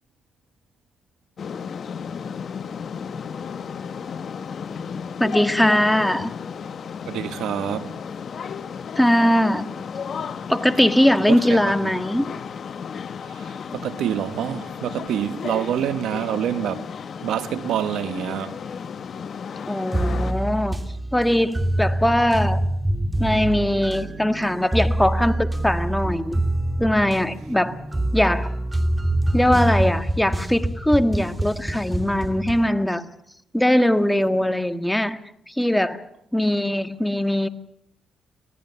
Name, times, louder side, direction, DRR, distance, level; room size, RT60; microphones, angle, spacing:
sound 1, 1.4-20.3, left 6 dB, 60° left, 1.0 m, -34 dB
voice 1, 5.2-6.3 9.0-9.7 10.5-12.3 19.7-20.8 21.1-22.6 23.2-26.4 26.8-27.8 28.1-28.5 29.3-33.0 33.5-35.2 35.5-36.0 36.3-37.5, left 1 dB, 5° left, 1.6 m, -20 dB
voice 2, 7.1-8.0 11.3-11.9 13.2-16.9 17.2-18.6, right 10 dB, 85° right, 1.1 m, -27 dB
sound 2, 19.9-32.7, right 1 dB, 15° right, 2.6 m, -25 dB
24.5 x 18.0 x 6.8 m
cardioid pair, 75°, 0 cm